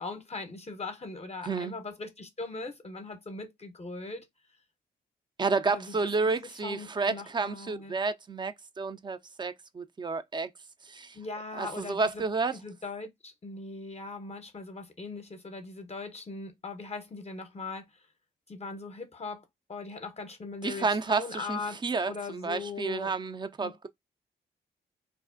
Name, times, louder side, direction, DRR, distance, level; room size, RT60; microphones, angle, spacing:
voice 1, 0.0-4.3 5.7-8.0 11.1-12.2 12.5-18.0 18.5-21.8 22.1-23.1 23.6-23.7, left 3 dB, 30° left, 0.6 m, -40 dB
voice 2, 5.4-10.5 10.9-11.2 11.6-12.5 20.6-23.9, right 4 dB, 20° right, 0.4 m, -30 dB
2.4 x 2.1 x 2.4 m
hypercardioid pair, 45°, 21 cm